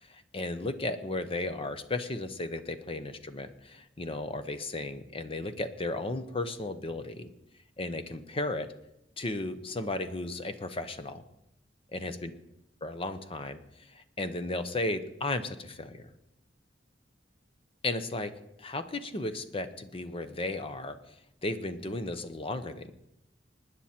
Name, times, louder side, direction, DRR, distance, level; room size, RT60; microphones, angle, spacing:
voice 1, 0.0-7.3 7.8-8.7 9.2-11.2 11.9-12.3 12.8-16.1 17.8-18.3 18.6-21.2 21.4-22.9, left 2 dB, 30° left, 10 dB, 0.8 m, -35 dB
19.5 x 9.7 x 4.4 m, 0.85 s
head